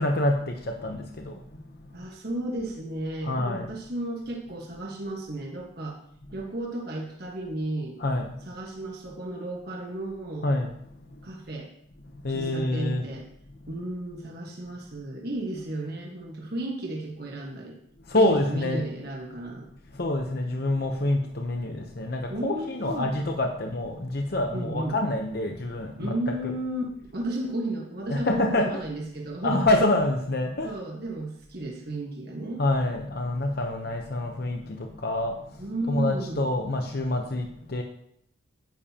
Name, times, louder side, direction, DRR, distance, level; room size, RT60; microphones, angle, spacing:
voice 1, 0.0-1.4 1.8-1.9 3.2-3.7 8.0-8.4 10.4-10.7 11.1-11.2 12.2-13.0 18.1-18.9 19.9-26.1 26.4-26.6 28.1-28.8 29.4-30.7 32.6-37.8, left 1 dB, 50° left, 2 dB, 0.8 m, -27 dB
voice 2, 1.9-6.0 6.3-8.0 8.5-10.5 11.2-11.7 12.3-13.2 13.7-17.8 18.1-19.7 22.3-23.1 24.5-25.0 26.0-29.6 30.6-32.6 35.6-36.5, right 1 dB, 50° right, -1 dB, 1.4 m, -33 dB
10.0 x 9.1 x 2.9 m, 0.71 s
head